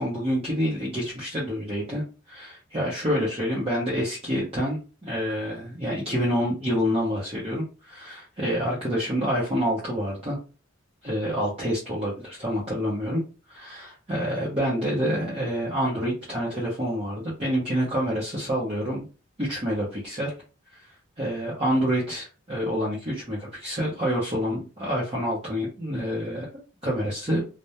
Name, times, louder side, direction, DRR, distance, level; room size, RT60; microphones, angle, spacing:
voice 1, 0.0-10.4 11.0-13.2 13.5-19.1 19.4-20.3 20.7-20.9 21.2-27.4, equal, 30° right, -6 dB, 0.7 m, -27 dB
2.2 x 2.1 x 2.7 m, 0.33 s
head